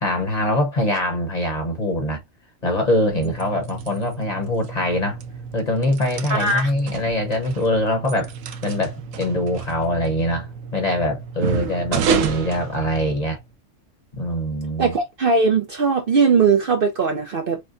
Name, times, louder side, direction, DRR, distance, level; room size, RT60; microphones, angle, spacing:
voice 1, 0.0-2.2 2.6-5.2 5.5-8.3 8.6-13.4 14.1-15.0, left 1 dB, 35° left, 1.0 m, -23 dB
sound 1, 3.0-13.5, right 6 dB, 80° right, 1.0 m, -30 dB
voice 2, 6.3-6.7 14.8-17.6, right 4 dB, 55° right, 0.7 m, -19 dB
6.2 x 2.1 x 2.5 m
omnidirectional pair, 1.4 m